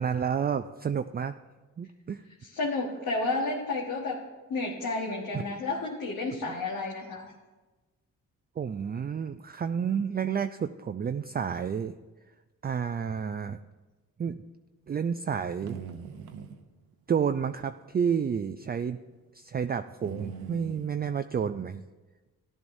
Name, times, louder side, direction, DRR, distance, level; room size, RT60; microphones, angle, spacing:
voice 1, 0.0-1.3 1.8-2.2 5.3-5.6 8.6-12.0 12.6-13.6 14.2-14.3 14.9-15.8 17.1-19.0 19.3-21.8, right 7 dB, 25° right, 9 dB, 0.4 m, -30 dB
voice 2, 2.4-4.2 4.5-7.3, left 3 dB, 65° left, -2 dB, 1.5 m, -31 dB
sound 1, 15.3-16.6 18.0-18.2 18.6-18.7 20.0-20.9, right 7 dB, 80° right, 0.9 m, -41 dB
14.5 x 10.5 x 2.7 m, 1.2 s
supercardioid pair, 50°, 37 cm